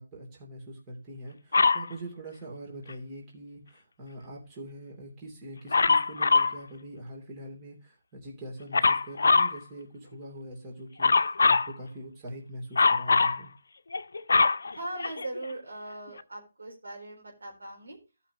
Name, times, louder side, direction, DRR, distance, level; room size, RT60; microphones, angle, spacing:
voice 1, 0.0-13.5, right 1 dB, 20° right, -3 dB, 3.1 m, -43 dB
Dog, 1.5-1.9 5.7-6.6 8.7-9.6 11.0-11.7 12.7-13.4 13.9-15.4 16.2-16.3, left 4 dB, 70° left, 0.5 m, -22 dB
voice 2, 14.7-18.0, right 1 dB, 75° right, 0 dB, 4.0 m, -40 dB
15.5 x 5.8 x 3.0 m, 0.29 s
figure-of-eight pair, 145°, 0 cm